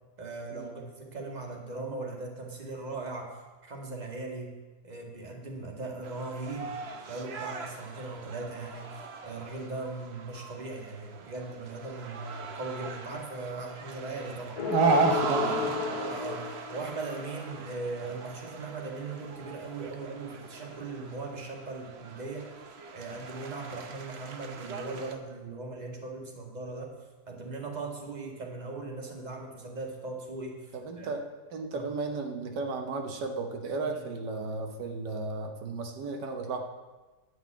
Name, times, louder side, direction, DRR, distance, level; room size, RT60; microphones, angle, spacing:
voice 1, 0.2-3.4 3.6-4.5 4.8-6.8 7.1-14.6 16.0-22.5 22.9-26.9 27.3-31.1 31.7-31.9 33.8-34.0, right 3 dB, 25° right, 1 dB, 1.6 m, -39 dB
sound 1, 6.0-25.1, right 5 dB, 50° right, 0.9 m, -41 dB
sound 2, 14.6-17.4, left 6 dB, 70° left, 1.4 m, -34 dB
voice 2, 14.7-16.0 30.7-31.2 31.5-36.6, right 3 dB, 90° right, 4 dB, 1.7 m, -30 dB
10.5 x 5.6 x 8.4 m, 1.2 s
omnidirectional pair, 1.8 m